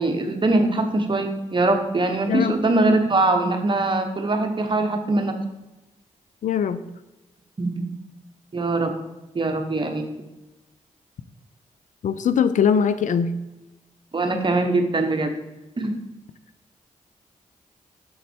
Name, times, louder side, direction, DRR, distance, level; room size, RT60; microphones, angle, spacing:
voice 1, 0.0-5.3 7.6-7.9 8.5-8.9 9.3-10.1 14.1-15.3 15.8-15.9, right 2 dB, 35° right, 5 dB, 0.9 m, -22 dB
voice 2, 2.3-2.6 6.4-6.8 12.0-13.4, left 7 dB, 65° left, 13 dB, 0.4 m, -21 dB
6.5 x 4.1 x 4.3 m, 1.0 s
cardioid pair, 65°, 14 cm